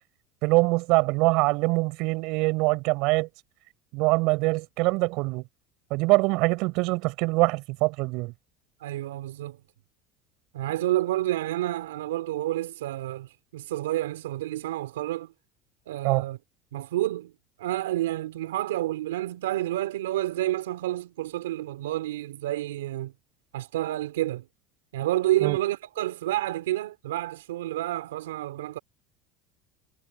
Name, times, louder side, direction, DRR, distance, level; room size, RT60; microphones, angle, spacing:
voice 1, 0.4-3.3 3.9-5.4 5.9-8.3 16.0-16.2 25.4-25.6, right 25 dB, 65° right, 5.8 m, -23 dB
voice 2, 8.8-9.6 10.5-15.3 15.9-16.4 16.7-17.3 17.6-23.1 23.5-24.4 24.9-28.8, right 15 dB, 90° right, 3.2 m, -29 dB
hypercardioid pair, 90°, 0 cm